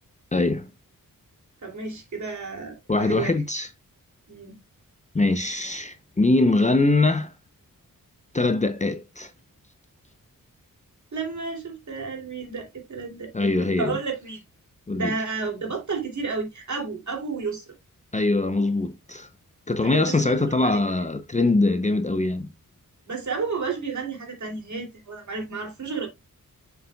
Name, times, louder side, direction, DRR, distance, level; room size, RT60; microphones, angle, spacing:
voice 1, 0.3-0.7 2.9-3.7 5.1-7.3 8.3-9.3 13.3-14.0 14.9-15.1 18.1-19.3 19.7-22.5, left 2 dB, 20° left, 0.5 m, -22 dB
voice 2, 1.6-3.4 4.3-4.6 11.1-13.5 13.8-14.4 14.9-17.6 19.8-20.8 23.1-26.1, right 4 dB, 55° right, 2.7 m, -31 dB
6.8 x 6.6 x 2.2 m
wide cardioid pair, 145°, 34 cm